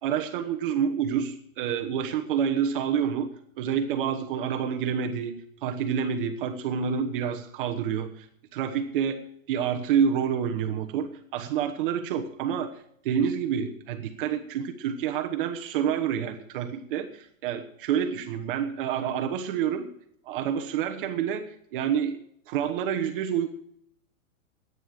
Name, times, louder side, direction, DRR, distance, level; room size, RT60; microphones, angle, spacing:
voice 1, 0.0-3.3 3.6-8.3 8.5-9.2 9.5-12.7 13.0-19.9 20.3-21.4 21.7-22.2 22.5-23.5, right 8 dB, 40° right, 5 dB, 1.2 m, -28 dB
12.5 x 9.5 x 6.6 m, 0.68 s
hypercardioid pair, 155°, 40 cm